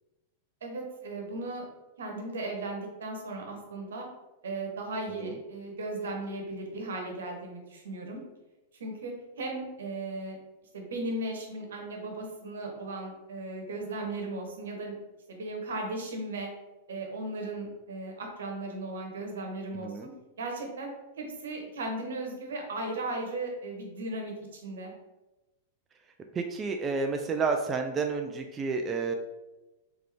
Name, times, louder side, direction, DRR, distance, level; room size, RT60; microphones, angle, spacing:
voice 1, 0.6-1.6 2.0-4.1 4.4-8.2 8.8-10.4 10.7-14.9 15.3-16.5 16.9-20.1 20.4-20.9 21.2-24.9, right 2 dB, 80° right, 2 dB, 1.0 m, -36 dB
voice 2, 19.7-20.1 26.3-29.1, right 4 dB, 25° right, 4 dB, 0.4 m, -30 dB
3.7 x 3.5 x 3.3 m, 1.0 s
hypercardioid pair, 110°, 0 cm